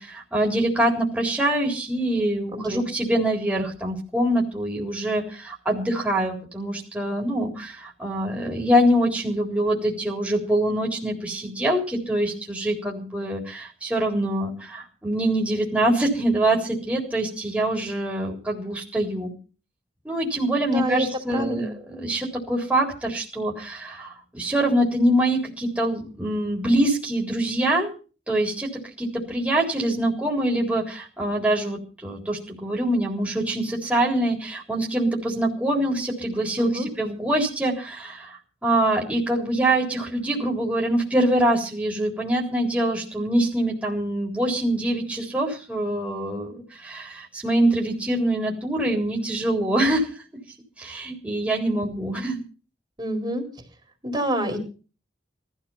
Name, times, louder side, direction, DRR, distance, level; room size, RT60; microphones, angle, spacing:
voice 1, 0.0-19.3 20.0-27.9 28.3-28.7 29.0-50.1 50.8-52.4, right 1 dB, 10° right, -2 dB, 3.9 m, -24 dB
voice 2, 20.7-21.7 36.6-36.9 53.0-53.4 54.0-54.6, equal, 25° right, 3 dB, 4.1 m, -27 dB
19.0 x 13.0 x 5.7 m, 0.38 s
head